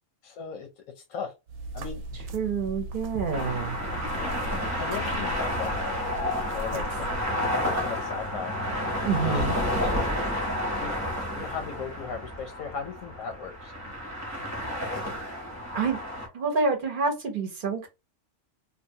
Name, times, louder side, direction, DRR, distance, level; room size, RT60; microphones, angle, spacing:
voice 1, 0.2-1.3 1.7-2.0 4.1-5.7 6.5-7.1 7.4-8.6 9.2-9.6 10.8-13.7, left 6 dB, 90° left, 1.0 m, -37 dB
sound 1, 1.5-7.3, right 1 dB, 85° right, 1.0 m, -38 dB
voice 2, 2.3-3.8 6.7-6.8 9.1-9.5 15.7-16.0 16.3-17.9, right 5 dB, 50° right, 0.7 m, -27 dB
sound 2, 3.3-16.3, left 1 dB, 15° right, 0.7 m, -30 dB
2.8 x 2.2 x 2.7 m
omnidirectional pair, 1.3 m